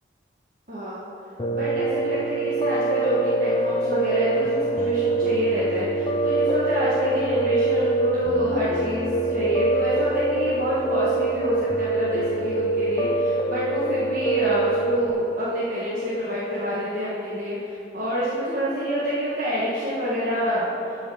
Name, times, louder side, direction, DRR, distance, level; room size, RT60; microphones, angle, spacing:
voice 1, 0.7-1.1 1.5-21.0, equal, 45° right, -9 dB, 1.6 m, -27 dB
Piano, 1.4-15.1, right 2 dB, 25° left, 0.5 m, -24 dB
11.0 x 5.1 x 6.5 m, 2.9 s
head